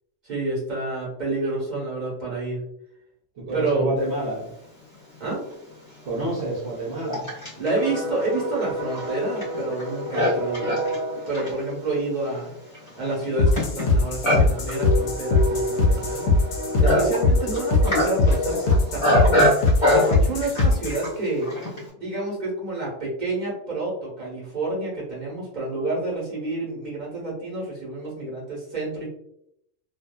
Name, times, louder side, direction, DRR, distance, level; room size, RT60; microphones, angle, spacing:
voice 1, 0.2-2.6 3.5-3.9 5.2-5.4 7.6-10.8 11.3-12.5 13.0-16.3 16.8-19.5 19.9-21.5 21.9-29.1, right 2 dB, 35° right, -5 dB, 1.1 m, -29 dB
voice 2, 3.4-4.5 6.0-7.3, right 1 dB, 65° right, -5 dB, 1.0 m, -28 dB
Livestock farm animals working animals, 5.1-5.2 6.0-21.9, left 1 dB, 25° left, 1.0 m, -25 dB
sound 1, 13.4-21.1, left 3 dB, 70° left, 0.8 m, -21 dB
2.6 x 2.4 x 2.2 m, 0.76 s
omnidirectional pair, 1.3 m